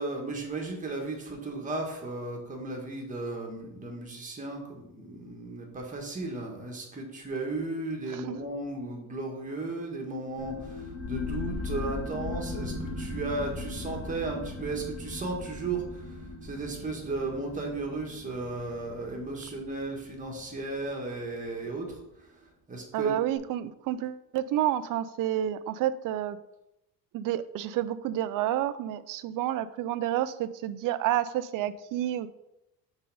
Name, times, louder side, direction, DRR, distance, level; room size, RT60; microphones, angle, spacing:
voice 1, 0.0-23.2, right 2 dB, 20° right, 0 dB, 1.5 m, -35 dB
sound 1, 10.4-21.5, left 2 dB, 20° left, 2.0 m, -38 dB
voice 2, 22.9-26.4 27.1-32.3, right 12 dB, 55° right, 14 dB, 0.5 m, -29 dB
5.6 x 4.0 x 5.4 m, 0.87 s
cardioid pair, 140°, 38 cm